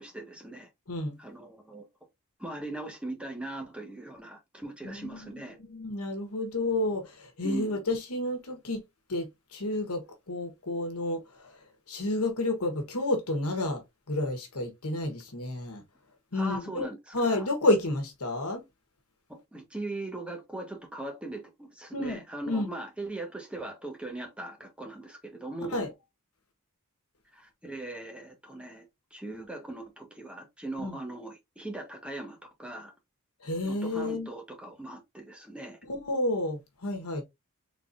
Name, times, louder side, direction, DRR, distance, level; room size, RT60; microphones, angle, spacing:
voice 1, 0.0-0.7 1.2-1.8 2.4-5.6 7.4-7.8 16.3-17.5 19.3-25.9 27.3-28.8 29.1-32.9 33.6-35.8, right 2 dB, 5° right, 1.3 m, -40 dB
voice 2, 4.8-8.8 9.1-11.5 11.9-13.8 14.1-15.8 16.3-16.9 17.1-18.6 21.9-22.2 22.5-22.7 25.7-25.9 30.8-30.9 33.4-34.3 35.9-37.2, left 1 dB, 75° left, 1.3 m, -30 dB
4.2 x 4.0 x 2.6 m
head